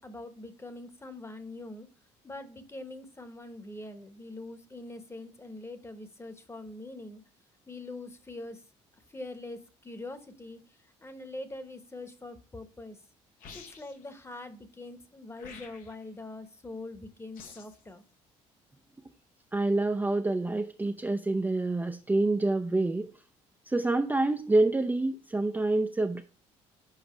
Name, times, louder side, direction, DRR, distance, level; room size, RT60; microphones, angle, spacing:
voice 1, 0.0-1.9 2.2-7.2 7.7-8.6 9.1-13.0 13.5-18.0, left 2 dB, 15° left, 9 dB, 1.1 m, -43 dB
sound 1, 13.4-14.1 15.4-16.1 17.3-17.8, left 5 dB, 70° left, 1.2 m, -49 dB
voice 2, 19.5-23.1 23.7-26.2, right 2 dB, 10° right, 5 dB, 0.5 m, -27 dB
7.3 x 4.9 x 3.1 m, 0.36 s
supercardioid pair, 65°, 15 cm